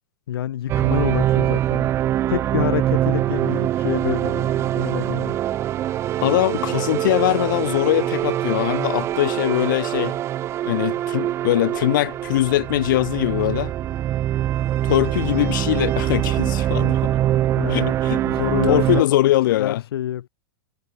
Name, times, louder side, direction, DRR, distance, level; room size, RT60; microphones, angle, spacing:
voice 1, 0.3-1.9 2.3-5.4 17.6-18.0 18.2-20.3, left 11 dB, 85° left, 6.2 m, -27 dB
sound 1, 0.7-19.0, right 12 dB, 20° right, 6.5 m, -23 dB
voice 2, 6.2-10.2 10.6-13.7 14.9-17.2 17.7-18.2 18.7-19.8, left 15 dB, 55° left, 4.4 m, -21 dB
supercardioid pair, 175°, 12 cm